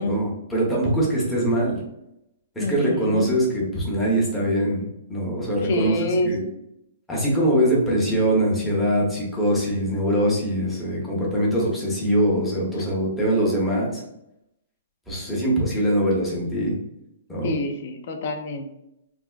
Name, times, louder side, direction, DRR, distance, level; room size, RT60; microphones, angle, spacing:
voice 1, 0.0-1.8 2.6-4.8 5.1-5.9 6.2-6.4 7.1-14.0 15.1-16.8 17.3-17.6, right 1 dB, 5° left, -5 dB, 0.7 m, -22 dB
voice 2, 2.6-3.3 5.6-6.3 17.4-18.6, left 1 dB, 45° left, 5 dB, 0.4 m, -26 dB
3.3 x 2.5 x 2.3 m, 0.84 s
hypercardioid pair, 165°, 0 cm